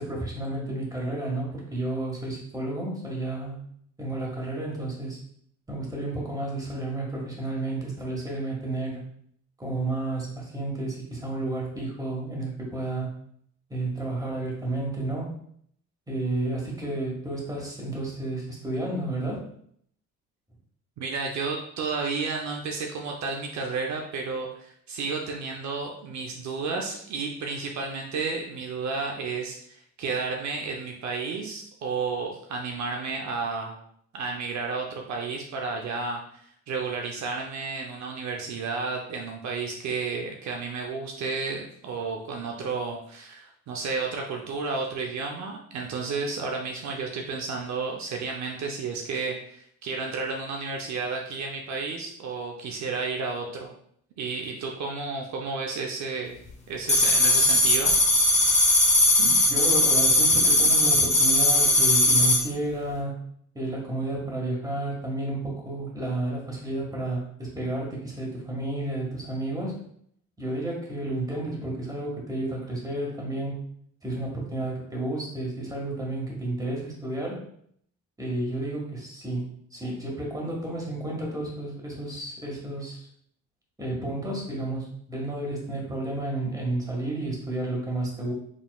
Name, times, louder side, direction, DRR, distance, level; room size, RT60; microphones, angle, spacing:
voice 1, 0.0-3.6 4.0-5.2 5.7-9.0 9.6-13.1 13.7-15.3 16.1-19.4 59.2-63.1 63.5-69.7 70.4-73.6 74.0-77.4 78.2-83.1 83.8-88.3, right 2 dB, 10° right, -2 dB, 1.6 m, -31 dB
voice 2, 21.0-33.8 34.1-53.7 54.2-56.4 56.7-57.9, right 4 dB, 65° right, 1 dB, 0.7 m, -32 dB
sound 1, 56.9-62.4, left 1 dB, 20° left, 1.0 m, -19 dB
5.0 x 3.4 x 2.3 m, 0.66 s
cardioid pair, 90°, 30 cm